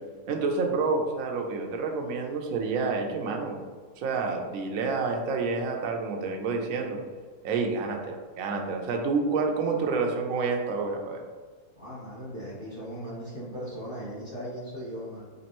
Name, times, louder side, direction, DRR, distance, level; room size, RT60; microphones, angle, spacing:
voice 1, 0.3-3.6 4.0-7.0 7.4-11.2, right 4 dB, 65° right, 3 dB, 1.0 m, -28 dB
voice 2, 11.7-15.3, equal, 35° left, -8 dB, 1.4 m, -38 dB
5.3 x 3.4 x 2.9 m, 1.5 s
omnidirectional pair, 1.7 m